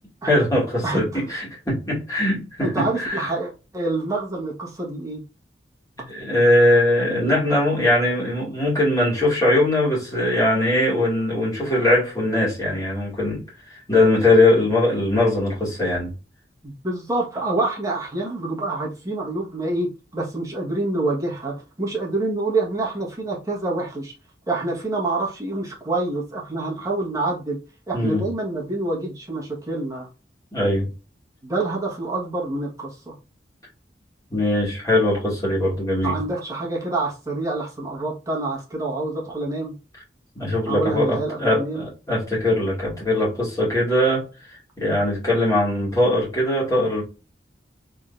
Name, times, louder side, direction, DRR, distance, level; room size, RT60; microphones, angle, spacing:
voice 1, 0.3-3.3 6.0-13.4 13.9-16.1 27.9-28.2 30.5-30.9 34.3-36.2 40.3-44.2 44.8-47.0, left 1 dB, 20° left, 2.1 m, -21 dB
voice 2, 0.8-1.2 2.6-5.2 16.6-24.1 24.5-27.6 27.9-30.1 31.4-33.1 36.0-39.7 40.6-41.8, right 2 dB, 20° right, 1.3 m, -27 dB
3.6 x 3.4 x 2.5 m
head